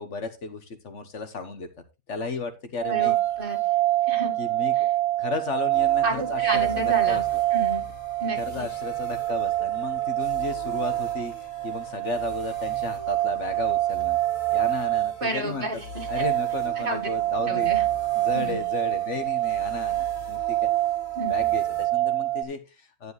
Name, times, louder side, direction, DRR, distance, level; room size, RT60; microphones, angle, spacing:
voice 1, 0.0-1.7 2.1-3.2 4.4-7.4 8.4-14.2 14.5-15.8 16.1-17.7 18.1-20.7 21.2-23.1, left 4 dB, 65° left, 9 dB, 1.6 m, -34 dB
sound 1, 2.8-22.4, right 16 dB, 75° right, 1.6 m, -26 dB
voice 2, 2.9-3.6 4.1-4.4 4.8-4.9 6.0-7.2 7.5-7.8 8.2-8.7 15.2-16.2 16.8-17.1 17.5-17.9 18.3-18.6 21.2-21.3, right 2 dB, 45° right, 3 dB, 2.1 m, -31 dB
sound 2, 5.7-21.9, left 4 dB, 85° left, 2.8 m, -45 dB
10.5 x 9.7 x 3.2 m, 0.26 s
omnidirectional pair, 1.3 m